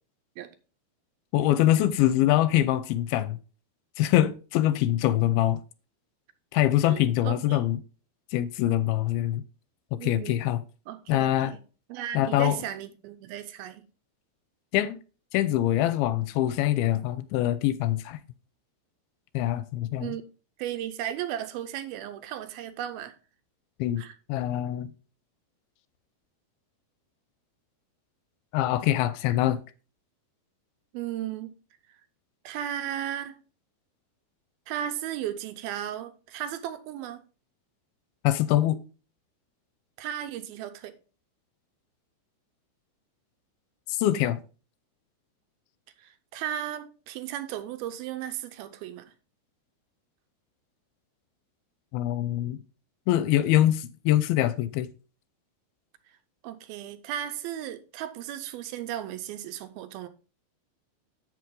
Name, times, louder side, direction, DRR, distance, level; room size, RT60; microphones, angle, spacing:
voice 1, 1.3-3.4 4.0-5.6 6.5-7.8 8.3-9.4 9.9-10.6 11.1-11.5 12.1-12.6 14.7-15.0 15.3-18.2 19.3-20.1 23.8-24.0 24.3-24.9 28.5-29.6 38.2-38.8 43.9-44.4 51.9-52.6 53.1-54.9, left 13 dB, 80° left, 2.4 m, -24 dB
voice 2, 6.9-7.7 10.0-10.4 10.9-11.6 11.9-13.8 20.0-20.2 20.6-23.2 24.0-24.1 30.9-31.5 31.9-32.0 32.4-33.4 34.7-37.2 40.0-40.9 46.0-49.1 56.4-60.1, right 11 dB, 80° right, 2.5 m, -35 dB
7.8 x 7.5 x 3.7 m
omnidirectional pair, 4.5 m